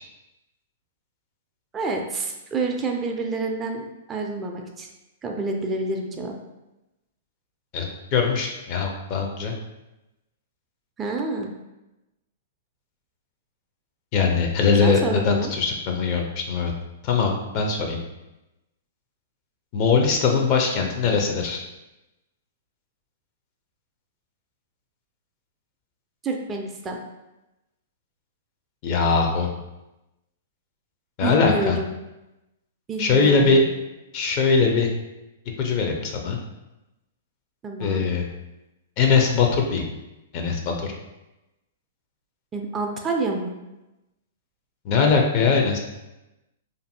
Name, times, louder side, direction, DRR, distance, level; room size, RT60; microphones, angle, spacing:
voice 1, 1.7-4.9 5.2-6.3 11.0-11.5 14.8-15.5 26.2-27.0 31.2-31.9 32.9-33.6 37.6-38.1 42.5-43.5, right 3 dB, 20° right, 2 dB, 0.3 m, -28 dB
voice 2, 7.7-9.5 14.1-16.7 17.0-18.0 19.7-21.6 28.8-29.5 31.2-31.8 33.0-33.6 34.1-34.9 35.6-36.4 37.8-38.2 39.0-39.8 40.3-40.9 44.8-45.8, left 5 dB, 40° left, 2 dB, 0.5 m, -21 dB
2.6 x 2.5 x 2.6 m, 0.97 s
hypercardioid pair, 130°, 0 cm